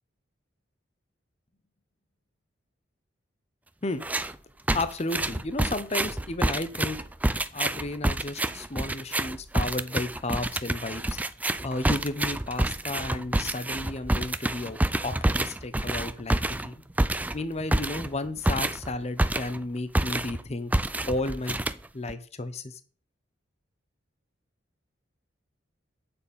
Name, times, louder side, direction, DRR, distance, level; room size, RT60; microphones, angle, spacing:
voice 1, 3.8-4.2 4.7-7.0 7.5-11.2 11.6-14.8 15.0-16.8 17.3-20.7 21.1-21.6 21.9-22.8, left 2 dB, 35° left, 11 dB, 0.8 m, -33 dB
sound 1, 4.0-4.3 4.7-19.7 19.9-20.4 20.7-22.1, right 1 dB, 10° right, 0.4 m, -28 dB
8.9 x 7.0 x 5.3 m, 0.39 s
head